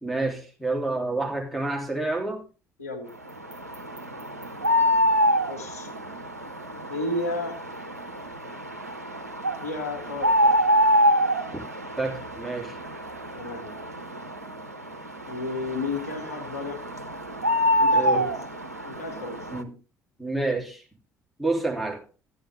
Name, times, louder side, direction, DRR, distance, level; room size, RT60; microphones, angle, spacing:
voice 1, 0.0-2.4 12.0-12.8 17.9-18.3 19.5-19.7 20.2-20.8 21.4-22.0, right 2 dB, ahead, 3.3 m, -28 dB
voice 2, 2.8-3.1 5.5-5.9 6.9-7.6 9.6-10.6 13.3-13.7 15.3-16.8 17.8-18.3 18.9-19.4, left 2 dB, 80° left, 1.4 m, -32 dB
sound 1, 3.3-19.6, equal, 90° right, 0.6 m, -26 dB
13.0 x 9.5 x 3.5 m
figure-of-eight pair, 50°, 8 cm